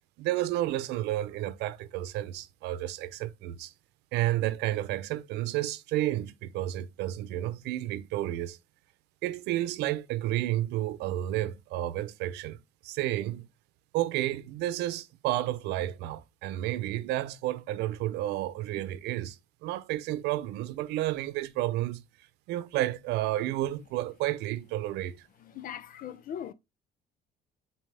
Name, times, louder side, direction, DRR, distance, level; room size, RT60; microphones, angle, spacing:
voice 1, 0.2-3.7 4.1-8.6 9.2-12.6 12.8-13.4 13.9-22.0 22.5-25.2, right 14 dB, 90° right, 0.7 m, -31 dB
voice 2, 25.4-26.5, left 9 dB, 55° left, 0.8 m, -40 dB
7.5 x 4.5 x 3.3 m
cardioid pair, 110°, 17 cm